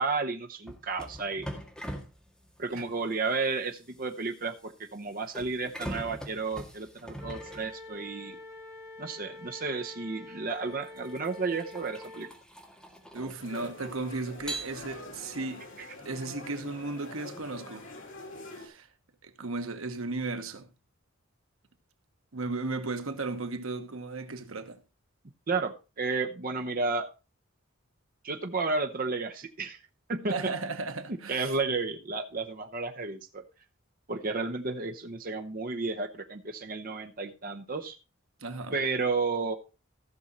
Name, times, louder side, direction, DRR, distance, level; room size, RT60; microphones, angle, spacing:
voice 1, 0.0-1.5 2.6-8.4 9.0-12.3 15.8-15.9 25.5-27.1 28.2-29.8 30.1-30.3 31.1-33.4 34.1-38.0 38.7-39.6, right 4 dB, 45° right, 0.8 m, -32 dB
sound 1, 0.7-8.3 9.6-9.8 10.5-13.9 14.4-15.3, right 1 dB, 5° left, 1.8 m, -43 dB
Wind instrument woodwind instrument, 7.2-12.3, left 2 dB, 15° right, 2.4 m, -46 dB
voice 2, 13.1-15.6 16.0-17.9 18.6-18.9 19.2-20.7 22.3-24.8 30.3-31.5 38.4-38.7, right 3 dB, 85° right, 1.2 m, -35 dB
sound 2, 13.4-18.7, left 2 dB, 65° left, 2.7 m, -45 dB
15.0 x 6.3 x 4.1 m
head